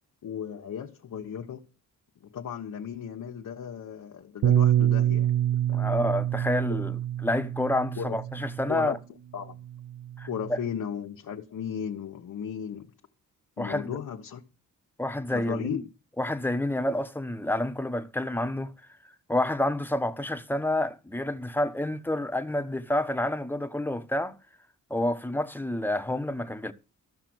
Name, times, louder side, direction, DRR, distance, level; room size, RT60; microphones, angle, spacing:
voice 1, 0.2-1.6 2.2-6.0 6.7-6.8 8.0-8.2 8.7-9.0 9.3-9.6 10.3-12.9 13.6-14.4 15.3-15.8, left 8 dB, 75° left, 1.3 m, -36 dB
Bass guitar, 4.4-8.9 9.7-10.7, right 11 dB, 80° right, 0.5 m, -26 dB
voice 2, 5.7-9.0 10.2-10.6 13.6-14.0 15.0-15.8 16.2-18.7 19.3-24.4 24.9-26.7, left 1 dB, 5° left, 1.3 m, -29 dB
14.0 x 5.9 x 7.8 m
cardioid pair, 80°, 32 cm